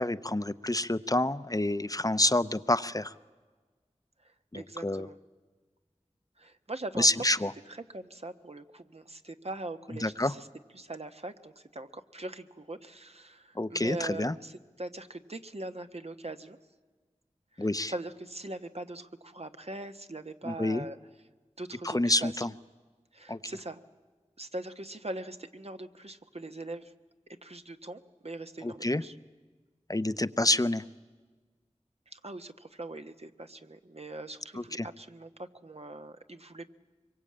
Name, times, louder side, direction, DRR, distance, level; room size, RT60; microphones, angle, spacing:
voice 1, 0.0-3.1 4.5-5.1 7.0-7.5 10.0-10.3 13.6-14.3 17.6-17.9 20.4-20.9 21.8-22.5 23.3-23.4 28.6-29.0 29.9-30.8 34.6-34.9, left 1 dB, 30° left, 13 dB, 0.7 m, -28 dB
voice 2, 4.2-5.2 6.4-7.3 7.7-10.5 10.7-16.6 17.5-21.0 21.6-22.4 23.1-23.8 24.4-26.9 27.3-29.1 32.1-36.7, right 2 dB, 60° right, 7 dB, 1.2 m, -42 dB
25.0 x 23.0 x 8.7 m, 1.4 s
wide cardioid pair, 40°, 12 cm